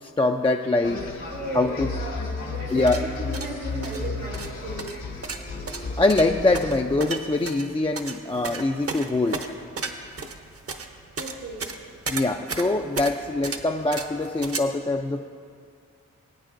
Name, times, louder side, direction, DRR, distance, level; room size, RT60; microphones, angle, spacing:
voice 1, 0.0-1.0 1.5-1.9 2.7-3.0 6.0-9.5 12.1-15.2, left 2 dB, 20° left, 3 dB, 0.3 m, -23 dB
sound 1, 0.8-6.7, left 3 dB, 80° left, 1.9 m, -33 dB
voice 2, 1.3-5.1 11.2-11.8, right 1 dB, 85° right, -6 dB, 1.5 m, -35 dB
sound 2, 2.7-14.6, right 4 dB, 50° right, 0.8 m, -34 dB
19.5 x 9.0 x 2.5 m, 2.2 s
wide cardioid pair, 85°, 31 cm